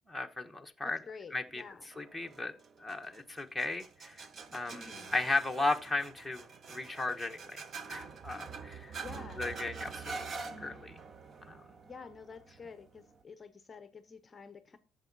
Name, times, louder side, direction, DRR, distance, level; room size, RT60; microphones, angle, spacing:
voice 1, 0.1-1.0 1.3-1.6 2.0-2.5 2.8-4.2 4.5-7.6 7.9-8.9 9.4-10.2 10.6-11.0 11.5-11.6, left 2 dB, ahead, 1.0 m, -35 dB
voice 2, 0.8-1.9 4.7-5.2 9.0-9.4 11.9-14.8, left 5 dB, 20° left, 0.8 m, -49 dB
sound 1, 1.9-13.2, right 5 dB, 35° right, 0.7 m, -46 dB
13.0 x 7.3 x 4.1 m
cardioid pair, 145°, 0 cm